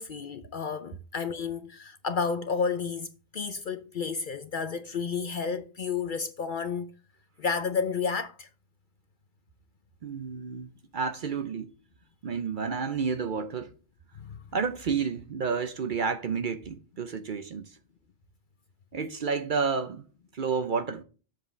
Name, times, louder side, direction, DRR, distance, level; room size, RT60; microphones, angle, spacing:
voice 1, 0.0-3.1 3.3-6.9 7.4-8.5 14.2-14.4, left 5 dB, 55° left, 0.6 m, -31 dB
voice 2, 10.0-11.7 12.2-13.7 14.5-17.7 18.9-20.0 20.3-21.0, right 5 dB, 55° right, 0.6 m, -30 dB
7.6 x 7.5 x 3.2 m
omnidirectional pair, 1.2 m